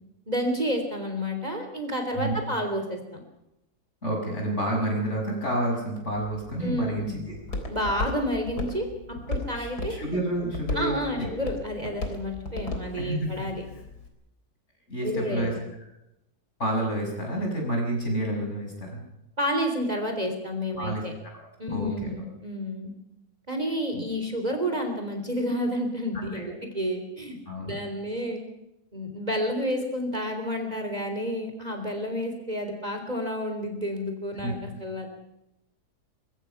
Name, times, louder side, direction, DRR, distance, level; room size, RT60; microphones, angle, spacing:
voice 1, 0.3-3.2 6.6-7.2 7.7-8.9 9.3-9.9 10.7-13.6 15.0-15.6 19.4-21.1 21.6-22.9 23.5-27.4 27.7-28.4 28.9-35.1, equal, 25° right, 4 dB, 3.6 m, -30 dB
voice 2, 4.0-7.3 9.5-10.9 11.2-11.3 12.9-13.5 14.9-15.5 16.6-19.0 20.8-21.0 21.3-21.4 21.7-22.3 23.9-24.0 26.3-26.5 27.5-27.8 34.4-34.5, right 1 dB, 45° left, 0 dB, 6.7 m, -29 dB
Walk footsteps, 6.1-14.1, left 2 dB, 75° left, 4.3 m, -36 dB
24.0 x 23.5 x 5.9 m, 0.89 s
omnidirectional pair, 1.7 m